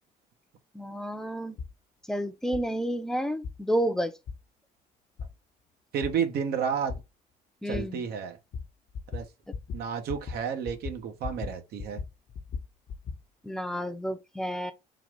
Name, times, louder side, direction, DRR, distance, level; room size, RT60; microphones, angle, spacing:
voice 1, 0.7-1.5 2.1-4.1 7.6-8.0 13.4-14.7, equal, 5° left, 0.6 m, -30 dB
sound 1, 1.6-1.7 2.5-2.6 3.4-3.6 4.3-4.4 5.2-5.3 6.0-6.1 6.9-7.0 7.7-7.8 8.5-8.7 8.9-9.3 9.5-9.8 10.1-10.4 10.7-11.5 11.8-13.2, left 5 dB, 50° left, 0.8 m, -36 dB
voice 2, 5.9-7.0 7.6-8.4 9.1-9.3 9.7-12.0, right 7 dB, 70° right, 1.0 m, -31 dB
3.9 x 2.5 x 4.6 m
cardioid pair, 110°, 17 cm